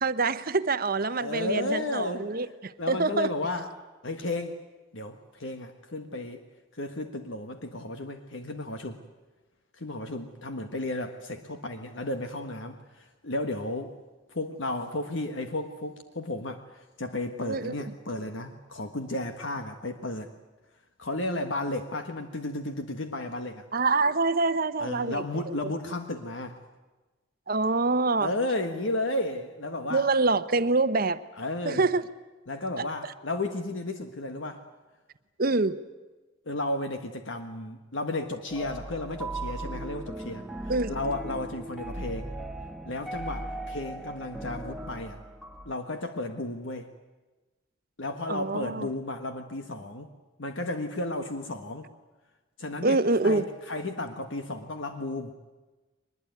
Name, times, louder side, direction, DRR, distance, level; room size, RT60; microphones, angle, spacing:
voice 1, 0.0-3.3 17.5-17.7 23.7-25.4 27.5-28.3 29.9-31.2 31.6-32.1 35.4-35.8 40.7-40.9 48.3-48.9 52.8-53.4, right 3 dB, 45° right, 0.9 m, -25 dB
voice 2, 1.0-2.2 2.8-3.8 4.0-4.6 4.9-6.4 6.7-9.0 9.8-13.9 14.3-20.3 21.0-23.6 24.8-26.6 28.2-30.1 31.4-31.9 32.5-34.6 36.4-40.4 40.9-42.3 42.9-45.2 45.6-46.9 48.0-50.1 50.4-51.9 52.6-53.0 53.2-55.4, left 2 dB, 65° left, 1.5 m, -33 dB
sound 1, 38.5-45.7, right 1 dB, ahead, 1.2 m, -38 dB
23.0 x 21.0 x 9.5 m
head